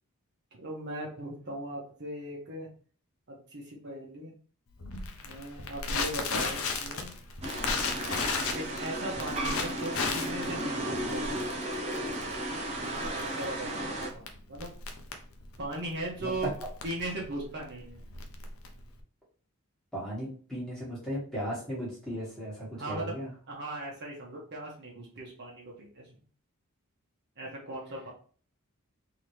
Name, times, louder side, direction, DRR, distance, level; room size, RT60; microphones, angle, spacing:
voice 1, 0.5-2.7 3.3-4.3 5.2-7.1 8.5-11.3 12.8-14.7 15.6-16.5 16.8-18.0 22.8-23.2 23.5-26.2 27.4-28.1, right 1 dB, 50° right, -3 dB, 1.2 m, -38 dB
Crackle, 4.8-19.0, left 4 dB, 65° left, 0.7 m, -35 dB
sound 1, 7.4-14.1, right 1 dB, 30° right, 0.8 m, -34 dB
voice 2, 19.9-23.3, equal, 5° left, -6 dB, 1.7 m, -36 dB
3.8 x 3.0 x 3.2 m, 0.43 s
head